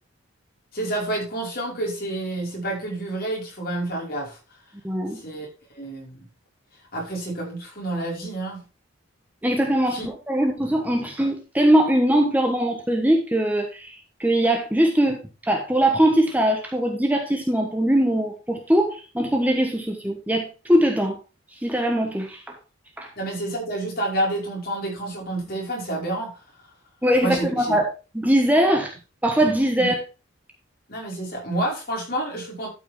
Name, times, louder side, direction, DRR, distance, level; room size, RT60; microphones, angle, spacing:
voice 1, 0.7-4.4 5.1-5.5 5.7-6.3 6.9-8.6 9.9-10.1 23.2-26.4 27.2-27.8 29.8-29.9 30.9-32.7, right 1 dB, 45° left, -2 dB, 5.4 m, -29 dB
voice 2, 4.8-5.2 9.4-21.2 21.5-22.5 23.0-23.1 27.0-27.8 28.1-29.0 29.2-30.0, right 1 dB, 10° right, 2 dB, 1.2 m, -21 dB
12.5 x 6.0 x 3.7 m, 0.32 s
head